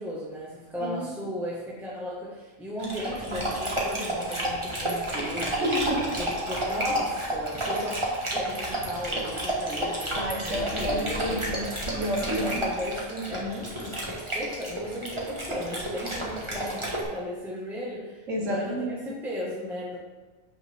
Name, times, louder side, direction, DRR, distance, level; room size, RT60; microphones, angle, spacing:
voice 1, 0.0-5.7 6.2-11.6 12.4-20.0, equal, ahead, -7 dB, 1.8 m, -36 dB
Dog, 2.8-17.0, right 1 dB, 20° right, 1.8 m, -31 dB
voice 2, 5.6-6.1 10.1-12.6 18.3-19.0, equal, 65° right, -2 dB, 1.8 m, -30 dB
12.0 x 5.9 x 3.8 m, 1.3 s
omnidirectional pair, 1.4 m